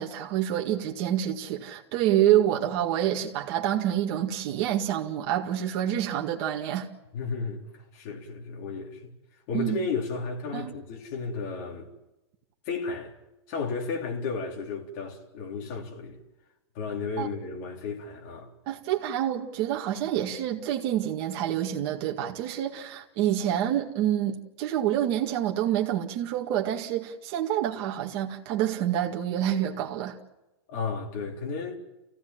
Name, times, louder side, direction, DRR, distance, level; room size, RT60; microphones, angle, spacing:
voice 1, 0.0-6.9 9.5-9.8 10.5-10.7 17.2-17.3 18.7-30.2, right 11 dB, 35° right, 2.0 m, -27 dB
voice 2, 7.1-9.1 9.5-11.9 12.7-13.1 13.5-16.2 16.7-18.5 30.7-31.8, left 4 dB, 40° left, 3.9 m, -33 dB
28.5 x 16.0 x 7.5 m
supercardioid pair, 170°, 14 cm